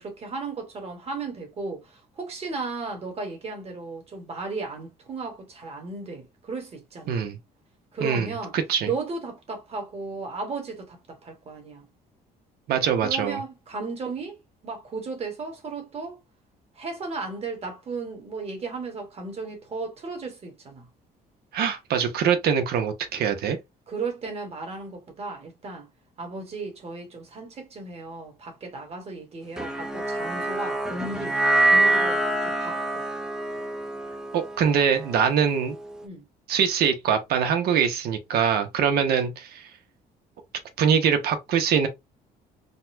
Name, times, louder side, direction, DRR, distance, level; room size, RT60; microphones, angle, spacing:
voice 1, 0.0-7.2 7.9-8.6 8.8-11.8 13.0-14.4 14.6-16.2 16.7-20.9 23.9-25.9 26.2-33.0 36.0-36.2, right 3 dB, 35° right, 1.5 m, -35 dB
voice 2, 8.0-8.9 12.7-13.4 21.5-23.6 34.3-35.8 36.5-39.7 40.8-41.9, right 7 dB, 70° right, 1.0 m, -23 dB
sound 1, 29.6-35.9, right 2 dB, 5° right, 0.6 m, -25 dB
4.1 x 2.3 x 2.7 m
cardioid pair, 110°, 17 cm